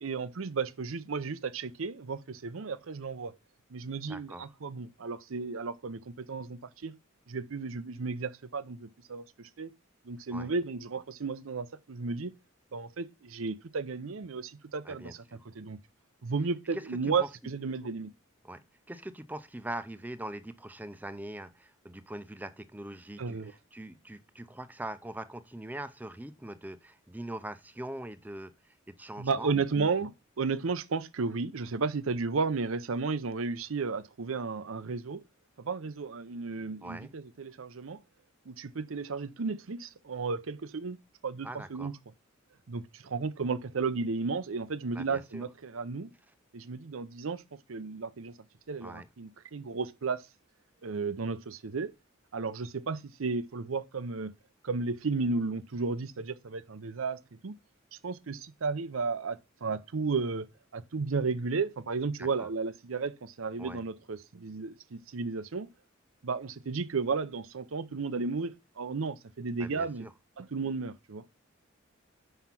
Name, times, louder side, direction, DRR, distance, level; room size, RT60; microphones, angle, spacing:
voice 1, 0.0-3.3 3.7-7.0 7.3-9.7 10.0-12.3 12.7-15.8 16.2-18.1 23.2-23.5 29.2-35.2 35.6-38.0 38.5-41.0 41.2-42.0 42.7-46.1 46.5-48.3 48.7-50.3 50.8-51.9 52.3-54.3 54.6-57.5 58.0-65.7 66.2-70.1 70.4-71.2, right 4 dB, 85° right, 0.6 m, -33 dB
voice 2, 4.1-4.5 10.3-10.5 14.8-15.5 16.7-17.3 18.4-29.5 36.8-37.1 41.4-41.9 44.9-45.5 48.8-49.1 62.2-62.5 63.6-63.8 69.6-70.1, right 1 dB, 10° right, 0.5 m, -42 dB
5.7 x 5.6 x 5.9 m
head